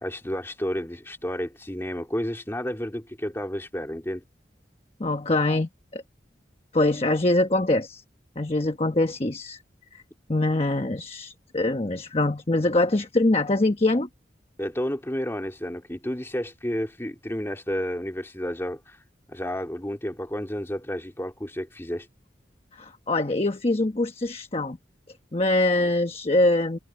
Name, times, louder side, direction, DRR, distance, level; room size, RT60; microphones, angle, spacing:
voice 1, 0.0-4.2 14.6-19.0 19.3-22.1 25.8-25.9, equal, 15° left, 2.1 m, -31 dB
voice 2, 5.0-6.0 6.7-8.0 8.4-9.6 9.9-10.0 10.3-14.1 22.7-24.8 25.3-26.8, left 2 dB, 35° left, 1.1 m, -24 dB
head